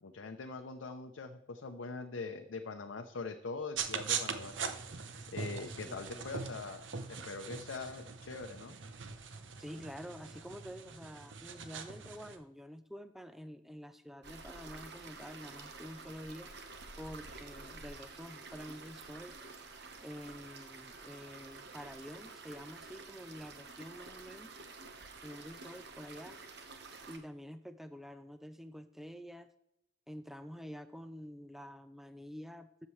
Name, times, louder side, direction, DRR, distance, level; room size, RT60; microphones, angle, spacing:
voice 1, 0.0-4.5 5.3-8.7, left 4 dB, 90° left, 5 dB, 0.7 m, -43 dB
sound 1, 3.8-12.4, right 6 dB, 80° right, 0.8 m, -41 dB
voice 2, 5.9-6.2 9.6-16.5 17.0-19.4 20.0-24.6 25.2-26.4 27.1-29.5 30.1-32.9, equal, ahead, 10 dB, 0.4 m, -48 dB
sound 2, 14.2-27.2, right 3 dB, 60° right, 1.1 m, -50 dB
12.5 x 7.4 x 3.2 m, 0.82 s
head